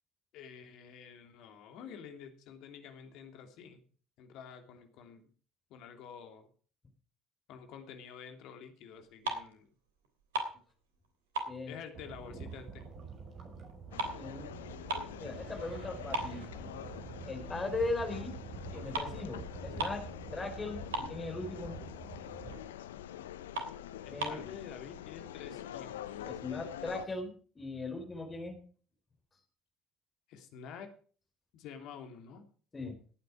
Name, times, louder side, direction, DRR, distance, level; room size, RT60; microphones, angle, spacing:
voice 1, 0.3-3.8 4.2-5.3 5.7-6.5 7.5-9.7 11.7-12.8 24.0-26.3 30.3-30.9 31.5-32.4, left 7 dB, 60° left, 6 dB, 2.9 m, -49 dB
sound 1, 9.0-9.7 10.0-11.1 11.3-12.9 13.2-15.2 15.6-15.7 16.1-17.2 17.6-17.8 18.6-18.7 18.9-19.2 19.5-19.6 19.8-20.1 20.4-20.5 20.7-21.6 22.0-22.1 22.5-22.6 23.1-23.2 23.5-24.5, right 2 dB, 80° right, 3.1 m, -38 dB
sound 2, 11.9-22.6, right 5 dB, 45° right, 5.7 m, -47 dB
sound 3, 13.9-27.1, left 11 dB, 80° left, 0.7 m, -46 dB
voice 2, 14.1-14.5 15.2-16.4 17.3-18.4 18.7-20.0 20.3-21.8 24.1-24.5 26.2-28.6 32.7-33.0, left 2 dB, 25° left, 5 dB, 4.5 m, -38 dB
17.5 x 9.4 x 4.8 m, 0.42 s
figure-of-eight pair, 55°, 0 cm